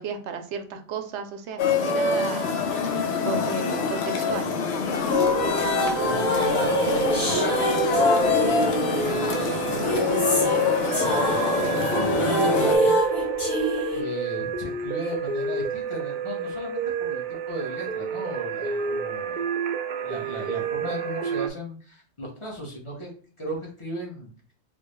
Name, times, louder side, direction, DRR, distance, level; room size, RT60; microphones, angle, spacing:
voice 1, 0.0-2.6 3.2-4.5 6.2-6.4, right 6 dB, 85° right, 6 dB, 0.9 m, -34 dB
sound 1, 1.6-12.8, left 5 dB, 75° left, 0.9 m, -25 dB
sound 2, 5.0-14.0, equal, 60° left, 2.2 m, -26 dB
voice 2, 6.0-8.7 9.0-10.6 10.9-12.9 13.9-19.4 20.0-23.1 23.4-24.3, equal, 30° left, -3 dB, 1.1 m, -36 dB
sound 3, 7.1-21.5, right 6 dB, 55° right, 0.5 m, -30 dB
3.6 x 2.7 x 3.1 m, 0.42 s
omnidirectional pair, 1.1 m